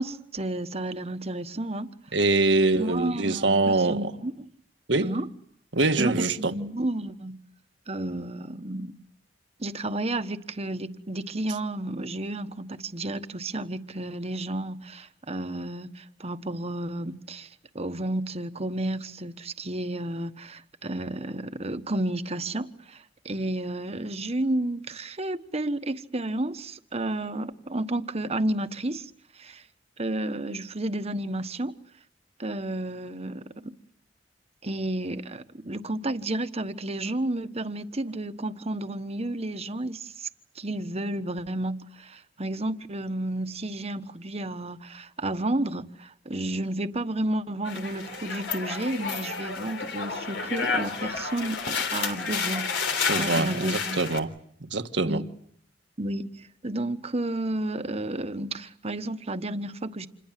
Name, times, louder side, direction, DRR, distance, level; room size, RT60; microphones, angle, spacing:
voice 1, 0.0-1.9 2.8-4.5 5.0-5.3 6.0-7.4 7.9-8.9 9.6-29.6 30.0-31.8 32.4-33.7 34.6-40.3 40.5-52.7 53.2-54.0 55.0-55.3 56.0-60.1, right 1 dB, 35° right, 1.3 m, -31 dB
voice 2, 2.1-4.0 4.9-5.1 5.7-6.5 53.1-54.3 54.6-55.2, right 3 dB, 80° right, 1.6 m, -24 dB
sound 1, 47.6-54.2, left 5 dB, 90° left, 3.5 m, -30 dB
28.0 x 21.5 x 7.6 m
head